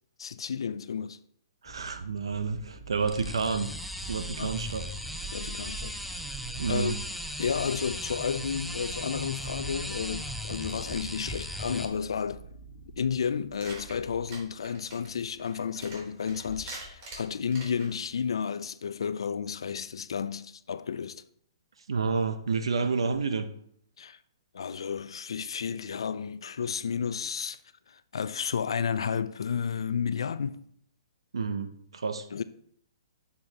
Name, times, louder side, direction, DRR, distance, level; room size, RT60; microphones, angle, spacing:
voice 1, 0.2-1.2 4.4-4.5 5.3-6.0 6.7-6.9 7.4-12.4 13.0-21.2 24.0-24.2 24.5-27.6 27.9-30.7 32.3-32.4, left 6 dB, 75° left, 0.4 m, -32 dB
voice 2, 1.6-3.7 4.1-4.9 6.6-7.0 21.9-23.5 31.3-32.2, right 5 dB, 85° right, 0.7 m, -29 dB
sound 1, 1.7-14.5, right 3 dB, 45° left, 1.3 m, -49 dB
sound 2, 3.0-11.9, equal, ahead, 0.6 m, -37 dB
sound 3, 13.5-18.2, right 1 dB, 40° right, 3.4 m, -45 dB
8.8 x 6.9 x 2.9 m
hypercardioid pair, 140°, 3 cm